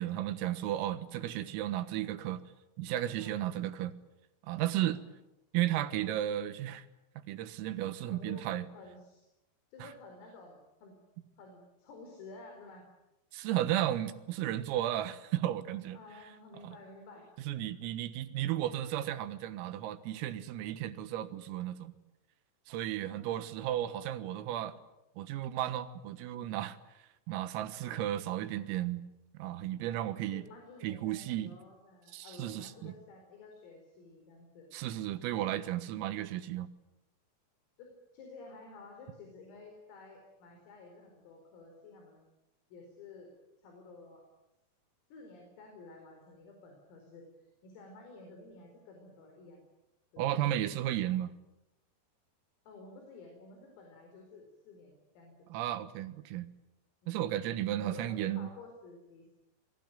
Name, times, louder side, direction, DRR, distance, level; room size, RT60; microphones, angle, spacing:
voice 1, 0.0-2.4 2.8-3.9 4.4-5.0 5.5-6.9 7.3-8.7 9.8-9.9 13.3-16.0 16.6-16.8 17.5-21.9 22.7-24.8 25.2-26.8 27.3-29.0 29.4-30.4 30.8-31.5 32.1-32.9 34.7-36.7 50.2-51.3 55.5-56.5 57.1-58.5, right 12 dB, 90° right, 11 dB, 4.1 m, -34 dB
voice 2, 3.2-3.6 4.8-5.1 8.1-9.3 9.7-11.0 11.4-12.9 15.9-17.3 22.9-23.9 30.1-34.7 37.8-37.9 38.1-42.2 42.7-43.3 43.6-44.2 45.1-49.6 50.1-50.4 52.7-55.5 57.0-59.3, left 3 dB, 85° left, 3 dB, 7.1 m, -52 dB
28.0 x 22.0 x 9.3 m, 0.93 s
omnidirectional pair, 5.8 m